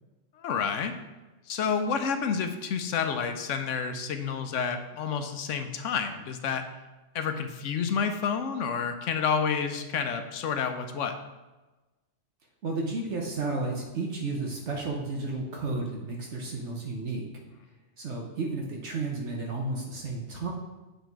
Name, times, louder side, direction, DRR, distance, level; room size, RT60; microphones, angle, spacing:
voice 1, 0.4-0.9 1.5-6.6 7.1-11.1, left 6 dB, 85° left, 8 dB, 1.0 m, -29 dB
voice 2, 12.6-17.2 18.0-20.5, right 3 dB, 70° right, 0 dB, 1.2 m, -32 dB
8.1 x 3.9 x 4.6 m, 1.1 s
omnidirectional pair, 1.2 m